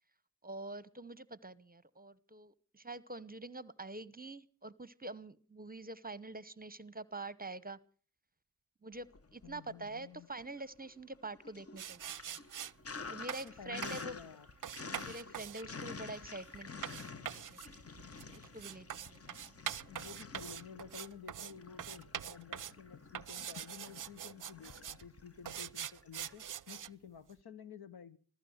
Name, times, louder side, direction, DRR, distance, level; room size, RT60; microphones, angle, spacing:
voice 1, 0.4-7.8 8.8-12.0 12.3-12.4 13.1-14.2 15.0-17.8 18.3-19.6, right 2 dB, 20° right, 0.9 m, -46 dB
Sink (filling or washing), 9.0-9.9 10.2-26.3, left 4 dB, 35° left, 1.0 m, -50 dB
voice 2, 9.4-10.3 13.4-14.5 19.9-28.2, left 7 dB, 60° left, 1.1 m, -52 dB
sound 1, 11.8-12.7 13.3-13.5 13.8-14.1 14.6-21.5 21.8-22.8 23.1-25.0 25.5-26.9, right 10 dB, 50° right, 0.6 m, -44 dB
15.5 x 14.0 x 6.4 m
supercardioid pair, 40°, 42 cm